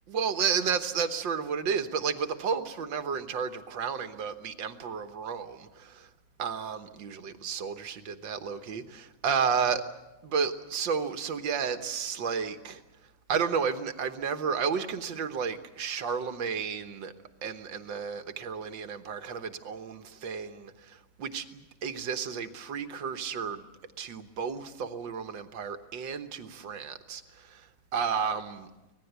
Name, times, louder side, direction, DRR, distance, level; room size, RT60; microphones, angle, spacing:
voice 1, 0.1-6.1 6.4-9.8 10.2-12.8 13.3-17.1 17.4-23.7 24.0-27.7 27.9-28.7, right 6 dB, 70° right, 1.9 m, -32 dB
25.0 x 19.0 x 8.1 m
omnidirectional pair, 2.2 m